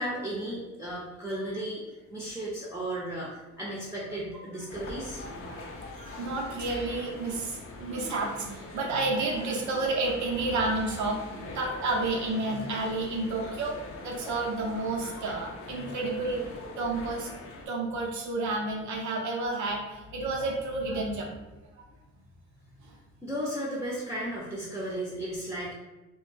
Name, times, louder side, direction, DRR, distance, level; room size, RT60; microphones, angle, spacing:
voice 1, 0.0-5.2 23.2-25.7, right 1 dB, 10° right, -7 dB, 0.6 m, -35 dB
sound 1, 4.7-17.7, left 3 dB, 45° left, 0.5 m, -43 dB
voice 2, 5.3-16.4 16.8-17.3 17.7-21.3 22.8-22.9, right 2 dB, 70° right, 0 dB, 0.7 m, -31 dB
2.2 x 2.1 x 3.2 m, 1.0 s
cardioid pair, 90°, 30 cm